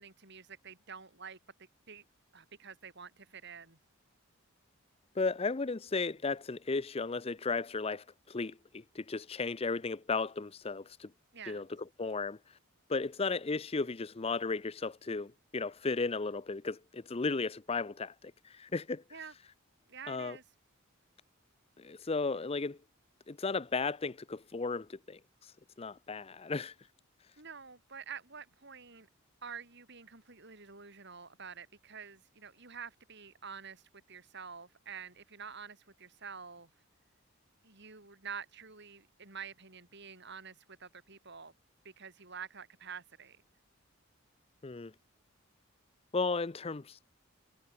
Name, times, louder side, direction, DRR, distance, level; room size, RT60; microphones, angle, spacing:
voice 1, 0.0-2.0 2.3-3.8 11.3-11.6 19.1-19.3 19.9-20.4 27.4-29.1 29.4-36.7 37.6-41.5 41.8-43.4, right 6 dB, 55° right, 5.0 m, -48 dB
voice 2, 5.2-8.5 8.9-11.1 11.5-11.6 12.0-12.4 12.9-19.0 20.1-20.4 21.8-22.8 23.3-25.5 25.8-26.7 44.6-44.9 46.1-47.1, left 4 dB, 30° left, 0.5 m, -35 dB
head